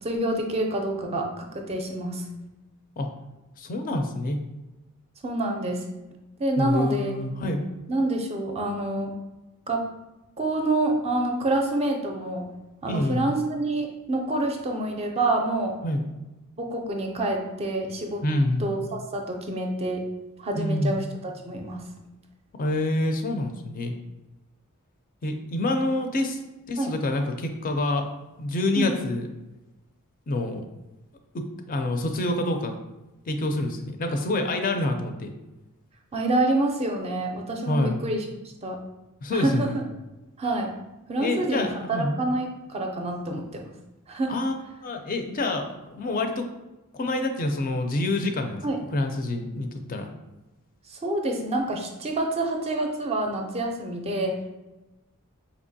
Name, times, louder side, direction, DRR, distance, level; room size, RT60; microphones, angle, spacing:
voice 1, 0.0-2.3 5.2-5.9 6.4-7.2 7.9-9.1 9.7-9.9 10.4-12.5 12.8-15.8 16.6-18.3 18.6-20.1 20.4-21.9 26.8-27.0 28.7-28.9 36.1-38.3 38.6-38.8 39.3-39.8 40.4-40.7 41.1-43.7 44.1-44.4 48.6-48.8 50.9-54.5, right 2 dB, 30° right, 3 dB, 0.4 m, -27 dB
voice 2, 3.6-4.4 6.6-7.6 12.9-13.3 15.8-16.1 18.2-18.7 20.6-21.0 22.6-23.9 25.2-26.4 26.7-28.1 28.4-29.3 30.3-30.6 31.3-32.7 33.3-35.3 37.7-38.0 39.2-39.7 41.2-42.2 44.3-44.5 44.8-46.5 46.9-48.6 48.9-50.1, left 2 dB, 40° left, 5 dB, 0.4 m, -27 dB
4.3 x 2.8 x 2.7 m, 1.0 s
head